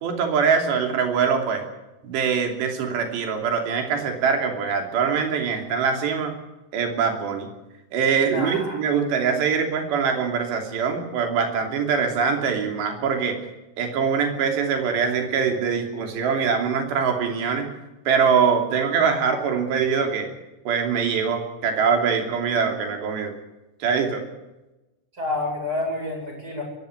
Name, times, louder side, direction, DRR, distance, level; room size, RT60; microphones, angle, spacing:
voice 1, 0.0-1.6 2.0-6.3 6.7-7.5 7.9-13.4 13.8-17.7 18.1-20.3 20.7-23.4 23.8-24.3, right 6 dB, 75° right, 4 dB, 5.2 m, -23 dB
voice 2, 8.3-8.8 25.1-26.6, left 2 dB, 20° right, 0 dB, 8.5 m, -29 dB
22.5 x 15.0 x 8.1 m, 1.0 s
omnidirectional pair, 5.0 m